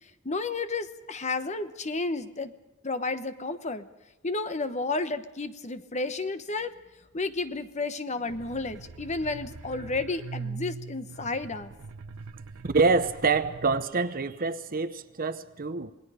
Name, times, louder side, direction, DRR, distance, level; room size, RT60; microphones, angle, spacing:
voice 1, 0.2-2.5 2.8-3.9 4.2-6.7 7.1-11.7, left 3 dB, 35° left, 10 dB, 1.1 m, -32 dB
sound 1, 8.3-13.8, right 4 dB, 90° right, 0.8 m, -42 dB
voice 2, 12.6-15.9, right 4 dB, 45° right, 11 dB, 0.9 m, -26 dB
27.0 x 19.5 x 5.0 m, 1.1 s
head